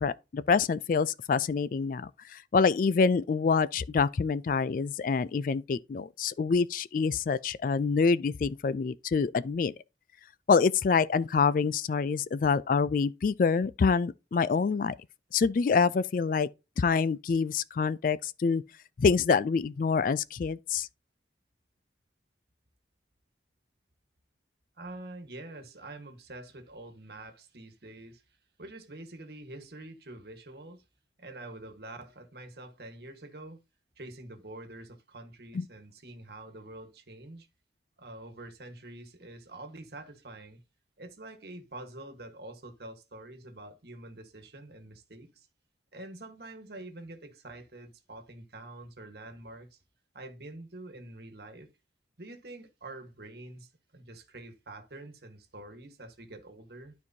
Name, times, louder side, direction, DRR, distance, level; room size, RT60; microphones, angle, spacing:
voice 1, 0.0-9.7 10.5-14.9 15.3-16.5 16.8-18.6 19.0-20.9 35.5-35.6, left 5 dB, 50° left, 0.3 m, -26 dB
voice 2, 24.8-28.2 28.6-30.8 31.2-33.6 34.0-37.5 38.0-40.6 41.0-45.5 45.9-49.8 50.1-51.7 52.2-56.9, right 2 dB, 60° right, 1.4 m, -46 dB
12.0 x 4.6 x 2.7 m
head